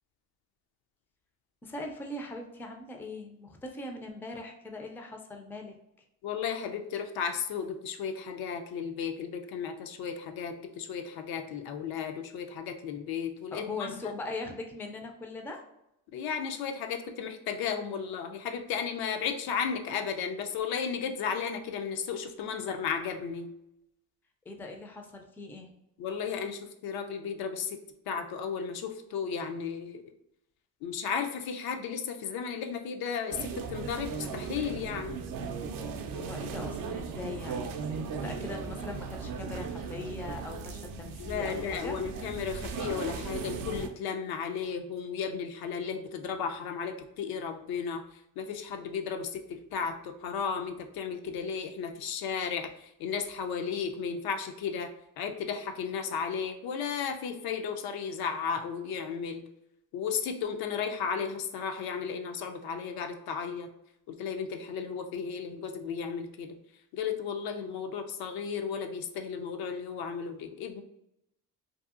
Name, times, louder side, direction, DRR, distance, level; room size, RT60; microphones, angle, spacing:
voice 1, 1.6-5.7 13.5-15.6 24.5-25.7 36.1-42.0, left 2 dB, 5° left, 3 dB, 0.3 m, -40 dB
voice 2, 6.2-13.9 16.1-23.5 26.0-27.8 28.1-30.0 30.8-35.2 41.2-48.0 48.4-54.9 55.2-59.5 59.9-63.7 64.1-66.6 66.9-70.8, left 6 dB, 80° left, 5 dB, 0.5 m, -34 dB
sound 1, 33.3-43.9, right 5 dB, 65° right, 0.5 m, -37 dB
2.7 x 2.6 x 2.4 m, 0.82 s
cardioid pair, 95°, 36 cm